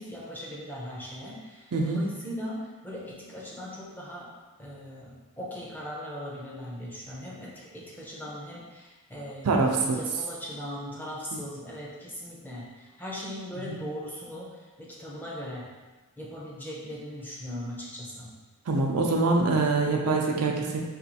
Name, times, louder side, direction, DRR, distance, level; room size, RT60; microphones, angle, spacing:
voice 1, 0.0-4.3 4.6-15.6 16.2-18.3, equal, 10° left, -5 dB, 0.5 m, -39 dB
voice 2, 1.7-2.1 9.4-10.0 11.3-11.4 13.7-13.8 18.7-20.8, right 3 dB, 85° right, 1 dB, 0.5 m, -24 dB
4.2 x 2.4 x 2.7 m, 1.3 s
head